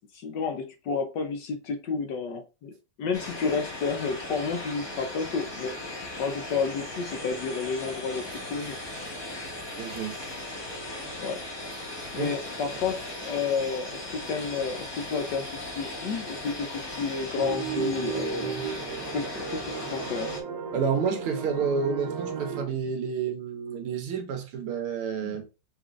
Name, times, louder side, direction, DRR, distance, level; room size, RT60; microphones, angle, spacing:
voice 1, 0.1-2.7 3.0-5.8 6.2-8.8 9.3-9.4 11.2-11.4 12.1-18.5 19.1-20.3 25.2-25.3, left 5 dB, 65° left, 1.2 m, -31 dB
sound 1, 3.1-20.4, left 1 dB, 25° left, 0.6 m, -38 dB
voice 2, 9.8-10.2 12.2-12.3 20.7-25.5, right 6 dB, 90° right, 1.9 m, -29 dB
sound 2, 17.3-22.6, right 6 dB, 60° right, 1.1 m, -34 dB
6.1 x 3.3 x 2.5 m
omnidirectional pair, 2.3 m